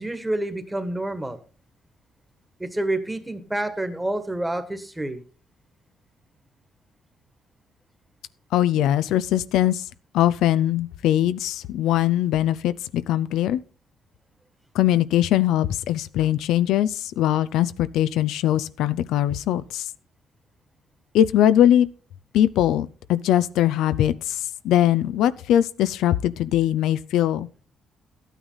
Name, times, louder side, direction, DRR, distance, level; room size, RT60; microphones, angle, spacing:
voice 1, 0.0-1.4 2.6-5.2, right 1 dB, 10° right, 1.7 m, -28 dB
voice 2, 8.5-9.8 10.1-13.6 14.7-19.9 21.1-21.9 22.3-27.5, left 12 dB, 90° left, 0.5 m, -21 dB
12.5 x 9.2 x 4.0 m
cardioid pair, 90°, 0 cm